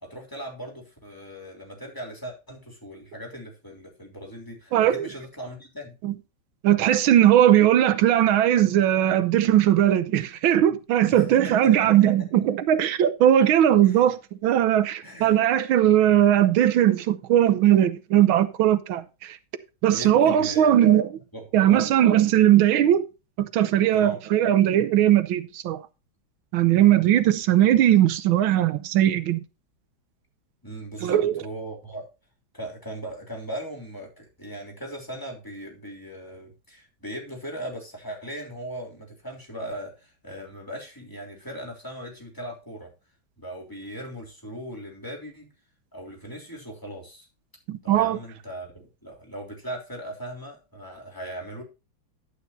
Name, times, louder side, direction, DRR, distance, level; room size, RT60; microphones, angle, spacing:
voice 1, 0.0-5.9 11.1-11.9 12.2-12.3 13.8-14.0 15.0-15.3 19.9-20.8 21.3-21.9 23.9-24.2 30.6-32.1 32.5-42.9 43.4-45.5 45.9-47.3 47.8-51.6, right 1 dB, 10° left, 3.2 m, -38 dB
voice 2, 4.7-5.1 6.0-6.1 6.6-14.2 14.4-19.4 19.8-21.1 21.5-23.0 23.4-25.8 26.5-29.4 31.0-31.4 47.7-48.2, right 11 dB, 85° right, 1.6 m, -19 dB
11.5 x 9.6 x 2.7 m
omnidirectional pair, 2.2 m